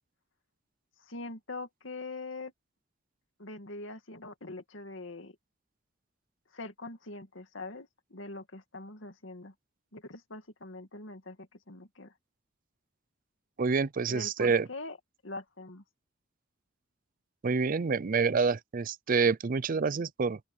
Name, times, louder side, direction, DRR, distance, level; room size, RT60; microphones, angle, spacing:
voice 1, 1.0-2.5 3.4-5.4 6.5-9.5 9.9-12.1 14.1-15.0 15.2-15.8, left 2 dB, 70° left, 2.4 m, -43 dB
voice 2, 13.6-14.7 17.4-20.4, right 5 dB, 45° right, 0.5 m, -27 dB
open air
head